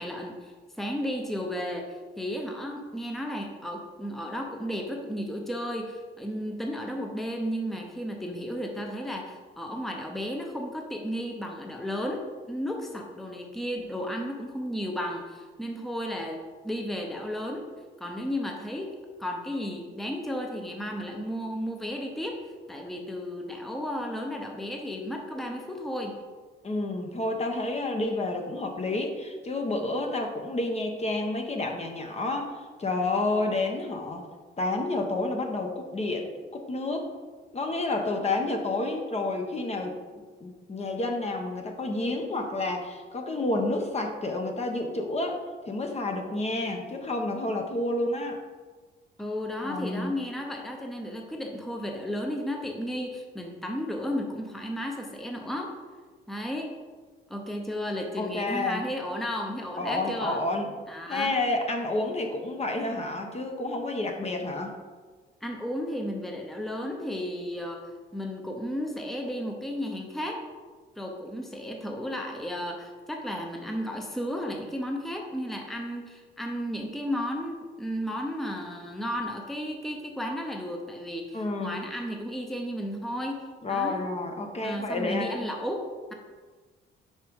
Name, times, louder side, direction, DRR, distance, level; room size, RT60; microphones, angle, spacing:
voice 1, 0.0-17.6 18.0-22.4 22.7-26.1 49.2-55.7 56.3-56.7 57.3-60.4 60.9-61.3 65.4-70.4 71.0-84.1 84.6-86.1, equal, ahead, 1 dB, 0.8 m, -33 dB
voice 2, 26.6-34.2 34.6-37.1 37.5-40.0 40.4-48.4 49.6-50.1 58.2-58.8 59.8-60.7 61.1-64.7 81.3-81.8 83.6-85.5, left 2 dB, 35° left, 3 dB, 0.9 m, -30 dB
5.5 x 5.0 x 4.7 m, 1.4 s
cardioid pair, 90°, 20 cm